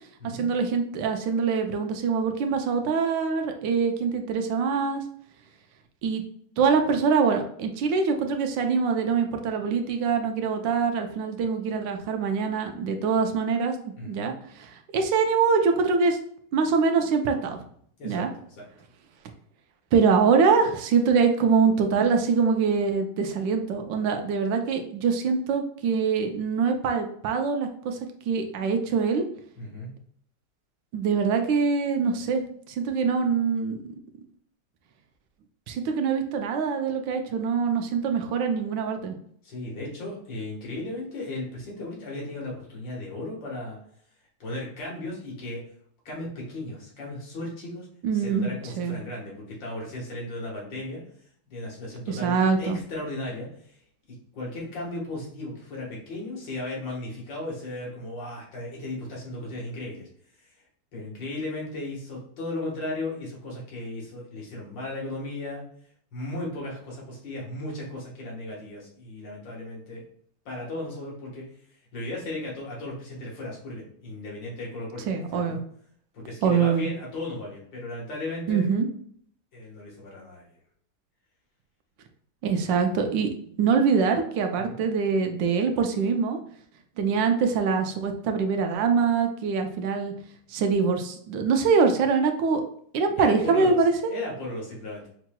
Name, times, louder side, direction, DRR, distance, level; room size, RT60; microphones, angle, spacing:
voice 1, 0.2-5.0 6.0-6.2 6.6-13.8 14.1-14.3 14.6-16.2 16.5-17.6 18.0-18.3 19.9-28.0 28.3-29.3 30.9-32.4 32.7-33.8 35.7-39.2 48.0-48.5 48.8-49.0 52.1-52.8 75.1-75.6 76.4-76.9 78.5-78.9 82.4-83.3 83.6-86.4 87.0-90.1 90.5-92.6 92.9-94.1, right 5 dB, 85° right, 5 dB, 1.3 m, -24 dB
voice 2, 14.0-14.3 18.0-18.7 29.6-29.9 39.4-43.8 44.4-45.6 46.1-47.9 48.1-51.0 51.5-53.8 54.3-60.1 60.5-60.6 60.9-65.6 66.1-70.0 70.5-71.4 71.9-75.6 76.1-78.7 79.5-80.5 84.6-84.8 93.2-93.8 94.1-95.1, left 2 dB, 90° left, -3 dB, 2.1 m, -36 dB
5.8 x 2.9 x 2.2 m, 0.63 s
omnidirectional pair, 1.9 m